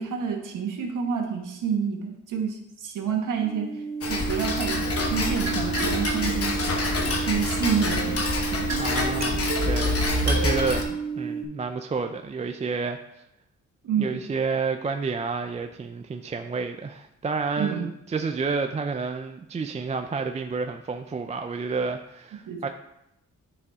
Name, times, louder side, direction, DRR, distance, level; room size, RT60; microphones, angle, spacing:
voice 1, 0.0-3.7 4.1-4.8 5.1-6.5 7.3-8.7 13.8-14.2 17.6-17.9 22.5-22.6, right 7 dB, 85° right, 2 dB, 1.3 m, -28 dB
sound 1, 3.4-11.4, right 6 dB, 20° left, 1.8 m, -32 dB
Tick-tock, 4.0-10.8, left 2 dB, 50° left, 1.1 m, -27 dB
sound 2, 5.5-10.7, right 5 dB, 60° right, 0.8 m, -35 dB
voice 2, 8.8-13.0 14.0-22.7, right 4 dB, 25° right, 6 dB, 0.4 m, -30 dB
9.7 x 4.9 x 3.6 m, 0.83 s
wide cardioid pair, 125°, 31 cm